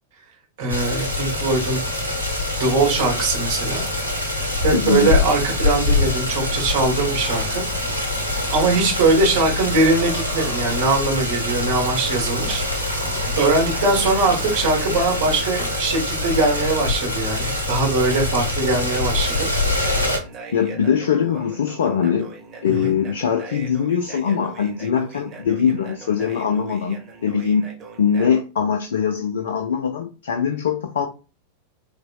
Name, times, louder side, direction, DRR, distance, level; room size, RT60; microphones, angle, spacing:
voice 1, 0.6-1.8 2.6-3.8 4.6-7.6 8.5-12.6 13.4-19.5 22.6-22.9, right 3 dB, 50° right, 1.3 m, -21 dB
sound 1, 0.7-20.2, left 2 dB, 85° right, 0.8 m, -24 dB
voice 2, 4.7-5.1 20.5-22.3 22.6-27.7 28.0-31.1, left 7 dB, 60° left, 0.4 m, -22 dB
sound 2, 9.8-10.8 11.9-17.5 18.4-28.4, right 4 dB, 30° right, 1.0 m, -40 dB
4.0 x 2.8 x 2.3 m
figure-of-eight pair, 90°, 0 cm